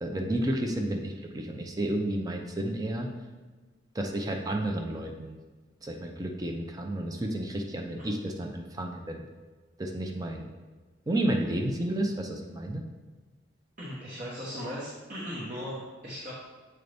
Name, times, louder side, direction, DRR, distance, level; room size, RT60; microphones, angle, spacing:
voice 1, 0.0-3.1 3.9-5.4 5.8-9.3 9.8-10.5 11.1-12.8, right 1 dB, 20° right, 2 dB, 0.5 m, -31 dB
voice 2, 13.8-16.3, equal, 45° right, -7 dB, 1.2 m, -37 dB
7.7 x 3.9 x 3.4 m, 1.3 s
head